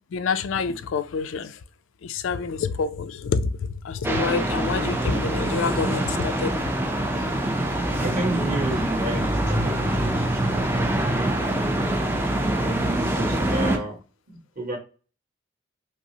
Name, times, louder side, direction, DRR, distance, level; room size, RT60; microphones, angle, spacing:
voice 1, 0.1-1.5 2.0-3.5 3.8-6.6, left 5 dB, 80° left, 0.4 m, -27 dB
sound 1, 4.0-13.8, right 1 dB, 10° right, 0.4 m, -24 dB
voice 2, 7.9-10.7 12.4-14.0 14.3-14.8, right 1 dB, 40° right, 1.5 m, -32 dB
5.2 x 2.0 x 2.8 m
head